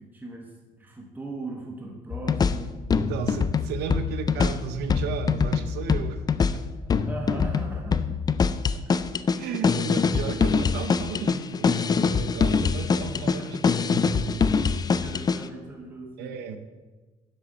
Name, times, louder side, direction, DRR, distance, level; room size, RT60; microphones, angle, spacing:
voice 1, 0.0-2.8 6.8-8.2 12.8-13.7 14.8-16.4, right 2 dB, 10° right, 1 dB, 1.0 m, -39 dB
sound 1, 2.1-15.4, left 5 dB, 25° left, 0.3 m, -24 dB
voice 2, 3.0-6.3 6.5-6.7 8.7-8.8 9.4-15.2 16.2-16.6, right 6 dB, 85° right, 10 dB, 0.7 m, -34 dB
6.9 x 6.5 x 5.3 m, 1.3 s
cardioid pair, 110°, 17 cm